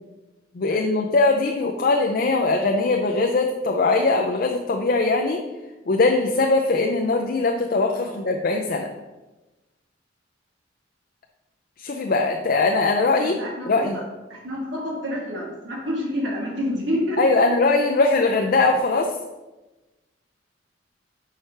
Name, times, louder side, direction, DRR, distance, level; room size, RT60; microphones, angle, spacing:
voice 1, 0.5-5.4 5.9-8.9 11.8-13.4 13.7-14.0 17.2-19.1, left 3 dB, 50° left, 2 dB, 0.5 m, -21 dB
voice 2, 13.1-14.0 14.3-17.2, equal, 80° right, -3 dB, 1.8 m, -28 dB
4.8 x 4.5 x 5.7 m, 1.1 s
head